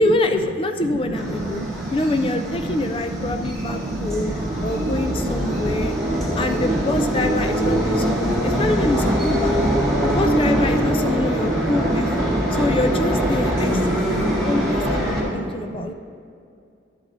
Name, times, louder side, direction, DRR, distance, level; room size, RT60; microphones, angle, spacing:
voice 1, 0.0-1.7 1.9-4.3 4.6-9.6 10.0-12.1 12.5-15.9, left 2 dB, 30° left, 7 dB, 0.4 m, -25 dB
sound 1, 1.1-15.2, equal, 5° left, 1.8 m, -23 dB
voice 2, 1.5-1.9 2.8-5.8 6.1-6.4 7.7-8.5 9.5-10.0 12.3-12.5 13.9-14.4 15.3-15.9, right 2 dB, 65° right, 10 dB, 0.4 m, -33 dB
12.0 x 8.0 x 2.6 m, 2.4 s
head